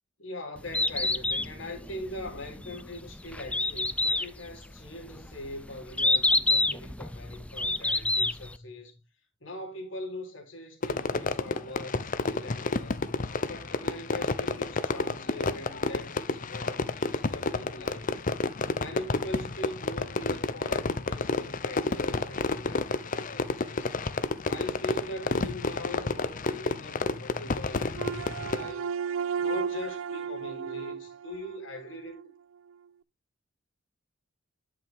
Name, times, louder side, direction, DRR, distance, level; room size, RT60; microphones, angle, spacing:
voice 1, 0.2-9.0 9.4-13.1 13.5-18.2 18.8-23.9 24.5-28.9 29.4-32.3, left 1 dB, 65° left, 3.5 m, -41 dB
Bird, 0.6-8.6, left 2 dB, 5° left, 0.4 m, -28 dB
Fireworks, 10.8-28.7, left 3 dB, 40° left, 0.7 m, -30 dB
sound 1, 27.9-32.3, right 7 dB, 75° right, 0.4 m, -34 dB
10.5 x 5.8 x 3.6 m
head